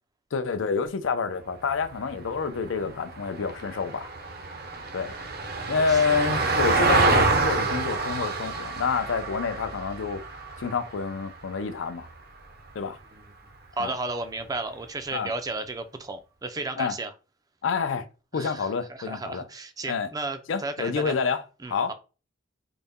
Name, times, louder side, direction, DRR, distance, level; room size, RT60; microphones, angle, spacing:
voice 1, 0.3-4.1 4.9-5.2 5.7-12.1 12.8-13.0 13.8-13.9 15.1-15.3 16.8-17.0 17.6-18.1 18.3-19.4 19.9-20.1 20.5-21.4 21.7-21.9, left 5 dB, 80° left, 0.5 m, -28 dB
Vehicle, 1.6-12.1 14.4-14.5, right 3 dB, 50° right, 0.7 m, -28 dB
voice 2, 5.7-6.2 13.1-13.2 13.8-17.1 18.3-18.7 19.0-21.1 21.6-21.9, right 3 dB, 20° right, 0.4 m, -34 dB
3.9 x 2.1 x 3.5 m
head